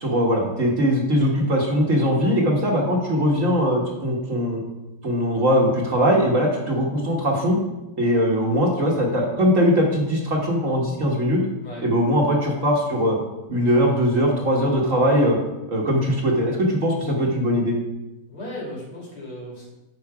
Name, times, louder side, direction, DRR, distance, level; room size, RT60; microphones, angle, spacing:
voice 1, 0.0-4.6 5.0-7.6 8.0-11.4 11.8-13.2 13.5-15.4 15.7-17.7, equal, 45° right, -1 dB, 1.4 m, -20 dB
voice 2, 18.3-19.7, left 1 dB, 85° left, -5 dB, 3.7 m, -36 dB
8.5 x 6.0 x 4.7 m, 1.0 s
omnidirectional pair, 2.3 m